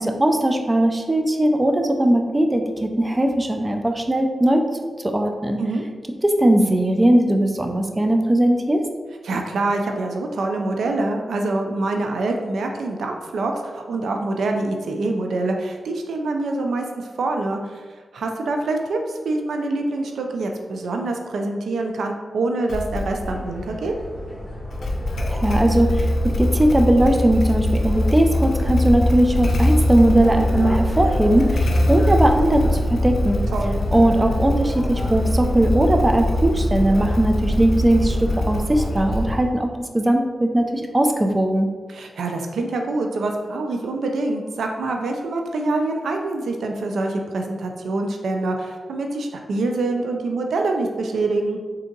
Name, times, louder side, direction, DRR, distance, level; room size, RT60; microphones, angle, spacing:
voice 1, 0.0-4.6 5.0-5.6 6.2-8.8 25.3-33.5 33.9-41.7, right 1 dB, 25° right, 4 dB, 0.5 m, -19 dB
voice 2, 9.2-17.8 18.1-23.9 33.5-33.8 41.9-51.6, right 2 dB, 85° right, 3 dB, 0.4 m, -25 dB
Motorcycle / Engine starting, 22.7-23.4 24.7-39.6, left 1 dB, 70° left, 0.5 m, -23 dB
sound 1, 23.2-39.4, left 1 dB, 30° left, 1.2 m, -31 dB
3.5 x 2.7 x 3.8 m, 1.5 s
cardioid pair, 50°, 0 cm